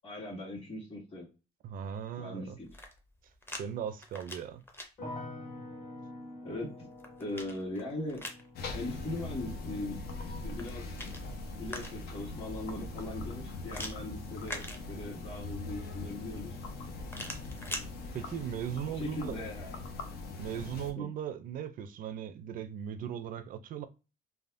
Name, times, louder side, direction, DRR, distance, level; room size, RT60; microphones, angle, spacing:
voice 1, 0.0-1.3 2.2-2.7 6.4-6.9 7.2-8.2 8.7-10.0 10.2-10.8 11.6-14.6 14.9-16.5 18.9-19.8 21.0-21.1, left 1 dB, 35° left, 1.5 m, -39 dB
voice 2, 1.6-2.6 3.6-4.6 18.1-19.4 20.4-23.9, right 9 dB, 55° right, 0.4 m, -38 dB
sound 1, 2.6-3.6 4.0-4.9 6.6-8.5 10.4-12.2 13.7-15.3 17.1-17.9, left 1 dB, 15° left, 0.6 m, -43 dB
sound 2, 5.0-16.0 16.3-17.1, left 1 dB, 50° left, 1.6 m, -50 dB
sound 3, 8.6-20.9, left 3 dB, 70° left, 0.6 m, -41 dB
3.4 x 2.1 x 2.5 m
cardioid pair, 110°, 17 cm